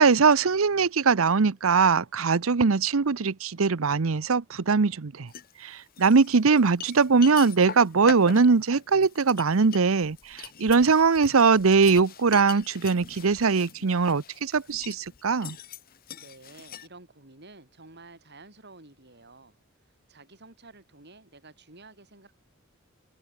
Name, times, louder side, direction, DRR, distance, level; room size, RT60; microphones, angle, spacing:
voice 1, 0.0-5.3 5.6-15.6, right 5 dB, 80° right, 0.7 m, -21 dB
sound 1, 5.3-5.5 6.0-16.9, left 8 dB, 45° left, 0.9 m, -42 dB
voice 2, 16.2-19.6 20.1-22.4, right 3 dB, 55° right, 5.9 m, -51 dB
head